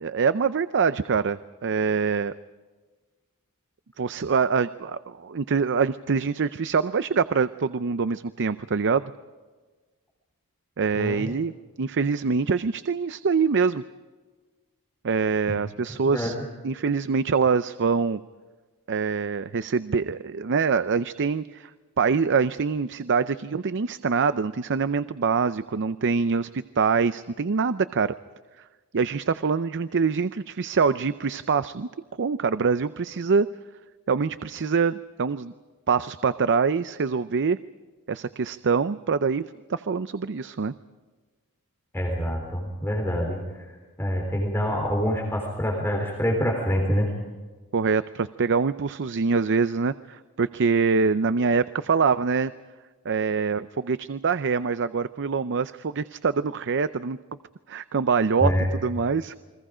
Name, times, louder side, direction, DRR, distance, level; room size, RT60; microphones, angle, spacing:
voice 1, 0.0-2.3 4.0-9.1 10.8-11.5 11.8-13.8 15.0-16.4 16.6-18.2 18.9-21.7 22.0-28.1 28.9-31.9 32.2-33.5 34.1-35.5 35.9-37.6 38.1-39.4 39.7-40.7 47.7-52.5 53.0-57.2 57.7-58.5 58.8-59.4, right 5 dB, 55° right, 13 dB, 0.6 m, -24 dB
voice 2, 10.9-11.3 15.5-15.6 16.0-16.4 41.9-43.7 44.0-47.1 58.4-58.7, equal, 10° left, 0 dB, 3.7 m, -26 dB
29.5 x 23.5 x 5.0 m, 1.4 s
head